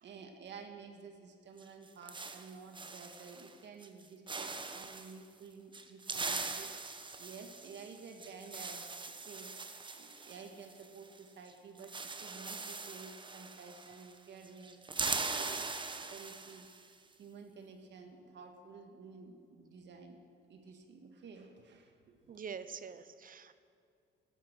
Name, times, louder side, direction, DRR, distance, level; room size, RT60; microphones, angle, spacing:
voice 1, 0.0-6.7 7.2-9.5 9.9-15.7 15.9-16.7 17.2-20.2 20.5-22.4, right 5 dB, 65° right, 5 dB, 1.7 m, -52 dB
sound 1, 1.6-3.5 3.8-4.0 4.3-5.1 5.7-11.2 11.5-11.6 11.8-14.2 14.4-16.9, right 3 dB, 25° right, 1.0 m, -41 dB
voice 2, 22.3-23.5, right 6 dB, 45° right, 13 dB, 0.8 m, -45 dB
14.0 x 12.0 x 6.2 m, 2.3 s
cardioid pair, 90°, 20 cm